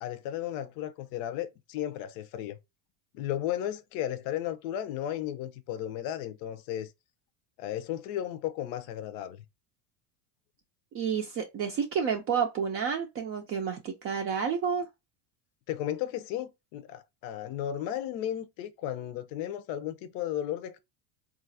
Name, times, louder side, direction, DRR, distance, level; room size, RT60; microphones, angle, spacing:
voice 1, 0.0-2.6 3.1-6.9 7.6-9.4 15.7-20.8, left 11 dB, 65° left, 0.6 m, -34 dB
voice 2, 10.9-14.9, right 7 dB, 35° right, 0.4 m, -30 dB
3.9 x 2.4 x 2.7 m
cardioid pair, 135°, 44 cm